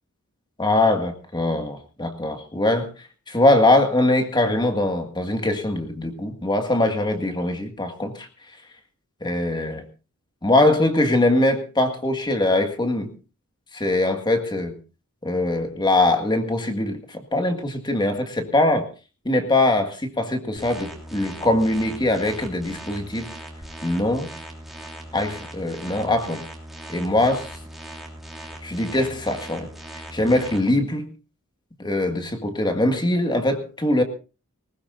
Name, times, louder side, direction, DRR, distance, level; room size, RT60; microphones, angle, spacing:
voice 1, 0.6-2.9 3.3-8.3 9.2-9.8 10.4-13.1 13.7-14.8 15.2-18.9 19.3-23.3 23.8-24.3 25.1-26.4 26.9-27.5 28.6-29.7 30.1-31.1 31.8-34.0, left 2 dB, 20° left, 6 dB, 1.8 m, -22 dB
sound 1, 20.6-30.6, right 1 dB, ahead, 3.0 m, -39 dB
20.0 x 19.0 x 2.5 m, 0.32 s
head